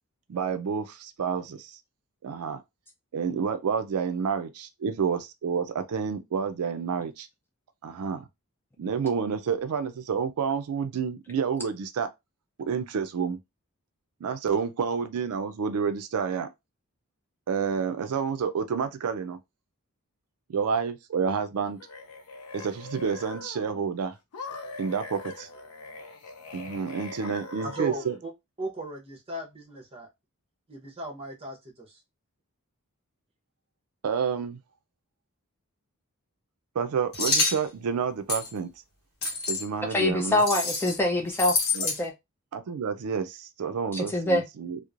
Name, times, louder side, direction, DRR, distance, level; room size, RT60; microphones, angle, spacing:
voice 1, 0.3-1.8 2.2-2.6 3.1-7.3 7.8-8.3 8.8-12.1 12.7-13.4 14.2-16.5 17.5-19.4 20.5-21.8 22.5-24.1 24.8-25.5 26.5-28.2 34.0-34.6 36.8-38.7 39.5-40.4 41.7-41.9 42.5-44.8, right 6 dB, 80° right, 0.4 m, -29 dB
sound 1, 21.6-23.8 24.3-28.2, left 3 dB, 75° left, 0.5 m, -42 dB
voice 2, 27.6-28.3 28.6-30.1 30.7-32.0, right 1 dB, 25° right, 0.8 m, -37 dB
sound 2, 37.1-37.6 38.3-38.5 39.2-39.6 40.4-41.0 41.3-42.0, left 3 dB, 45° left, 0.8 m, -27 dB
voice 3, 39.9-41.6 41.8-42.1 43.9-44.5, left 1 dB, 10° left, 0.3 m, -25 dB
3.0 x 2.0 x 2.4 m
head